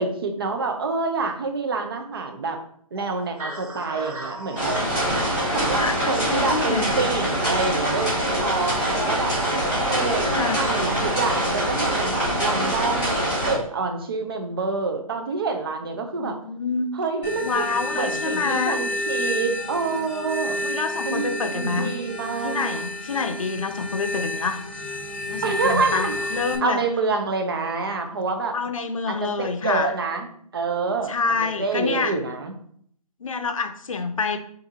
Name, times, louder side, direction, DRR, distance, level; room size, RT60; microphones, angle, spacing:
voice 1, 0.0-2.6 2.9-4.8 5.5-9.5 9.9-13.1 13.4-16.4 16.9-20.6 21.0-22.8 25.4-26.3 26.6-28.6 29.1-30.3 30.5-31.1 31.6-32.5, right 4 dB, 40° right, 5 dB, 0.6 m, -27 dB
sound 1, 3.0-11.1, right 3 dB, 70° right, 1.4 m, -39 dB
sound 2, 4.6-13.5, right 1 dB, 10° right, 1.1 m, -24 dB
voice 2, 5.2-6.9 9.9-10.6 16.0-16.9 17.4-18.8 20.6-22.0 22.4-24.6 25.3-26.8 28.5-29.9 31.1-32.1 33.2-34.4, left 4 dB, 60° left, 7 dB, 0.6 m, -27 dB
sound 3, 17.2-26.6, left 1 dB, 15° left, 0.5 m, -30 dB
5.8 x 2.6 x 2.8 m, 0.64 s
hypercardioid pair, 160°, 19 cm